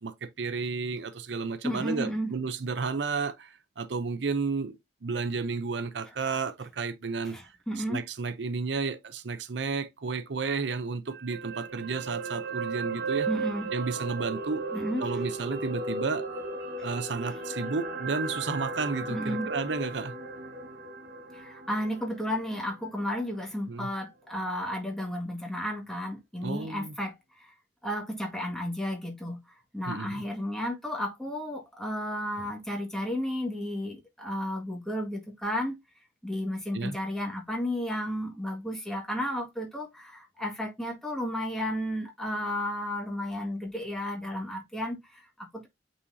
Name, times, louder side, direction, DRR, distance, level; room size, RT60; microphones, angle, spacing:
voice 1, 0.0-4.8 5.0-7.4 7.8-13.3 13.7-14.6 15.0-16.3 16.8-20.1 23.7-23.9 26.4-27.0 29.9-30.2 36.7-37.0, right 4 dB, 75° right, 0.6 m, -32 dB
voice 2, 1.6-2.3 7.2-8.0 13.3-13.7 14.7-15.1 16.8-16.9 19.1-19.5 21.3-27.5 27.8-35.8 36.2-45.7, equal, 5° left, 1.8 m, -33 dB
sound 1, 11.1-23.4 23.7-23.9, right 3 dB, 55° right, 2.0 m, -36 dB
8.5 x 4.2 x 2.7 m
head